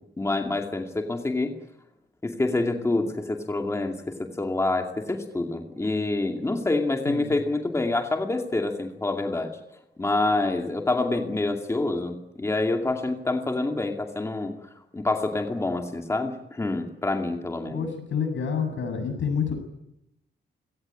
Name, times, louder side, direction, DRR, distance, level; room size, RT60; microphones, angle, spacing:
voice 1, 0.2-1.5 2.2-9.5 10.0-14.5 14.9-17.8, left 2 dB, 15° left, 4 dB, 2.4 m, -27 dB
voice 2, 7.1-7.4 17.7-19.6, left 6 dB, 85° left, 7 dB, 7.6 m, -28 dB
28.0 x 18.0 x 9.9 m, 0.85 s
wide cardioid pair, 180°, 19 cm